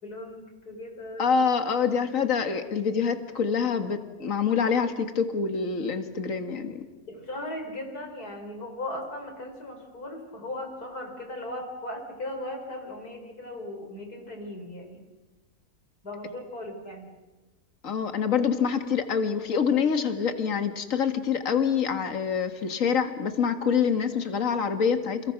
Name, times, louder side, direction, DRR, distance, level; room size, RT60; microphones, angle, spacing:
voice 1, 0.0-1.3 7.1-15.0 16.0-17.1, left 1 dB, 90° left, 4 dB, 5.2 m, -37 dB
voice 2, 1.2-6.8 17.8-25.3, left 6 dB, 60° left, 8 dB, 2.2 m, -26 dB
29.5 x 29.5 x 6.0 m, 1.2 s
omnidirectional pair, 1.6 m